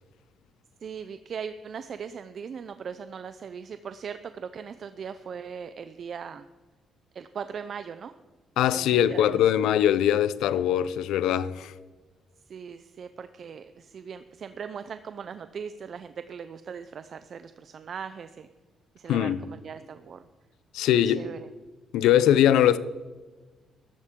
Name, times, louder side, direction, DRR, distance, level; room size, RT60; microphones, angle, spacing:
voice 1, 0.8-6.5 7.1-8.1 8.7-9.7 12.5-18.5 18.9-20.2 21.0-21.5, right 6 dB, 55° right, 0.5 m, -39 dB
voice 2, 8.6-11.7 19.1-19.4 20.7-21.3 21.9-22.8, left 11 dB, 85° left, 0.5 m, -22 dB
14.5 x 12.5 x 3.7 m
cardioid pair, 90°, 0 cm